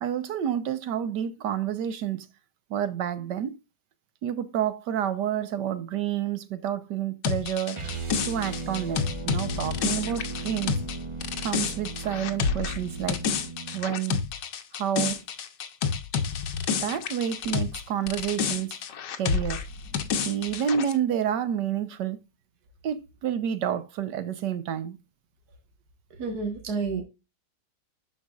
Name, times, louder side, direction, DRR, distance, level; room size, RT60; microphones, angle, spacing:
voice 1, 0.0-2.2 2.7-3.6 4.2-7.8 8.2-10.8 11.4-13.2 13.7-14.2 14.7-15.2 16.8-18.7 19.2-22.2 22.8-25.0, right 9 dB, 80° right, 1.5 m, -29 dB
sound 1, 7.2-17.8 18.1-20.9, left 6 dB, 80° left, 1.6 m, -29 dB
sound 2, 7.7-13.8, right 3 dB, 20° right, 1.1 m, -37 dB
voice 2, 26.2-27.0, right 4 dB, 65° right, 1.9 m, -29 dB
12.0 x 4.6 x 2.4 m
omnidirectional pair, 1.8 m